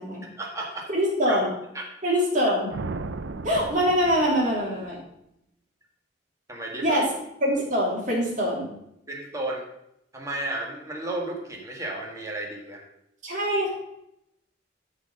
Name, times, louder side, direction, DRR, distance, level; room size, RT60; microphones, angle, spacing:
voice 1, 0.4-0.9 1.3-1.4 1.7-1.8 6.5-7.0 9.1-9.6 10.1-12.8, right 2 dB, 15° right, -1 dB, 1.8 m, -33 dB
voice 2, 0.9-1.5 2.0-2.7 3.4-5.0 6.8-7.1 7.4-8.7 13.2-13.7, equal, 45° right, -3 dB, 2.8 m, -24 dB
sound 1, 2.7-5.0, right 3 dB, 80° right, 0.5 m, -36 dB
12.5 x 4.2 x 5.4 m, 0.79 s
head